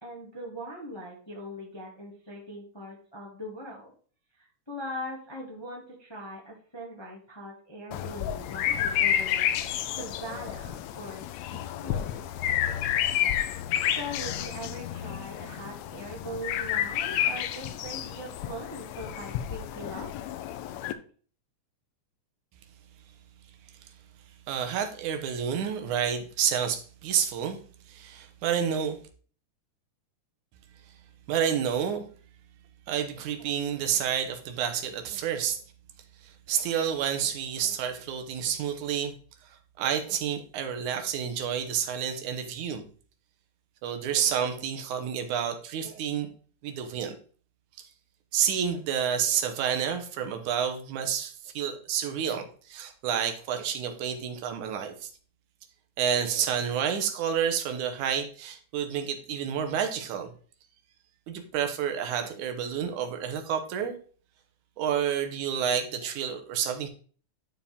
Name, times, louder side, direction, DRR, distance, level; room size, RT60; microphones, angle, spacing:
voice 1, 0.0-3.9 4.7-9.5 10.0-12.1 12.5-13.0 13.9-20.1, equal, 10° left, -2 dB, 1.2 m, -41 dB
sound 1, 7.9-20.9, left 10 dB, 80° left, 1.8 m, -30 dB
voice 2, 24.5-27.6 27.9-29.0 31.3-32.0 32.9-35.6 36.2-39.1 39.8-42.8 43.8-46.3 46.6-47.2 47.8-47.9 48.3-55.1 56.0-60.3 61.3-64.0 64.8-66.9, right 8 dB, 80° right, 6 dB, 2.3 m, -29 dB
10.5 x 4.7 x 3.5 m, 0.42 s
omnidirectional pair, 3.5 m